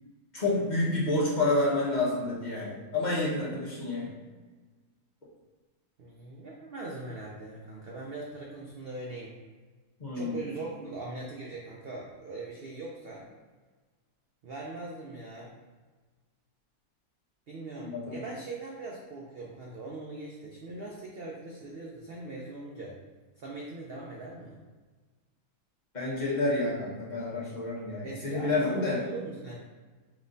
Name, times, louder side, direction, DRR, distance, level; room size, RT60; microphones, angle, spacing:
voice 1, 0.3-4.1 10.0-10.4 17.9-18.2 25.9-29.0, left 2 dB, 30° left, -6 dB, 1.0 m, -29 dB
voice 2, 6.0-9.4 10.1-13.3 14.4-15.5 17.5-23.0 23.4-24.6 28.0-29.6, right 2 dB, 85° right, -2 dB, 0.5 m, -41 dB
5.3 x 3.0 x 2.6 m, 1.4 s
omnidirectional pair, 1.7 m